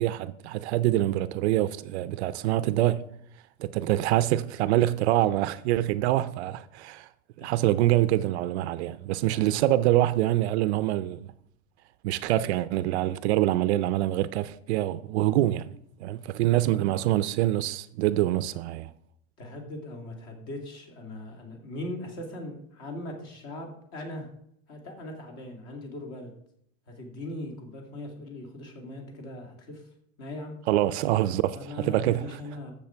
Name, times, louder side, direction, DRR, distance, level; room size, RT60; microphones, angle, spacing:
voice 1, 0.0-3.0 3.6-7.1 7.4-11.3 12.0-15.7 16.0-18.9 30.7-32.4, right 14 dB, 55° right, 0.5 m, -25 dB
voice 2, 19.4-24.3 24.7-26.3 26.9-29.8 30.2-30.5 31.5-32.7, left 1 dB, 40° left, 2.5 m, -40 dB
12.5 x 7.3 x 4.5 m
supercardioid pair, 175°, 39 cm